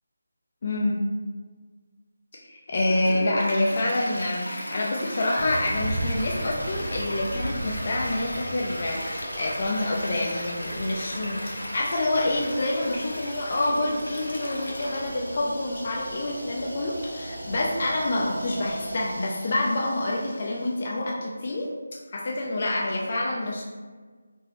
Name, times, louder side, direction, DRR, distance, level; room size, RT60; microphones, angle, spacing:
voice 1, 0.6-1.0 2.4-11.4 11.7-21.7 22.1-23.6, left 2 dB, 45° left, -3 dB, 0.4 m, -27 dB
Toilet flush, 2.8-20.8, equal, 75° left, 0.7 m, -37 dB
sound 1, 5.4-19.1, right 2 dB, 35° right, 0.4 m, -37 dB
4.3 x 2.0 x 3.0 m, 1.4 s
figure-of-eight pair, 160°, 0 cm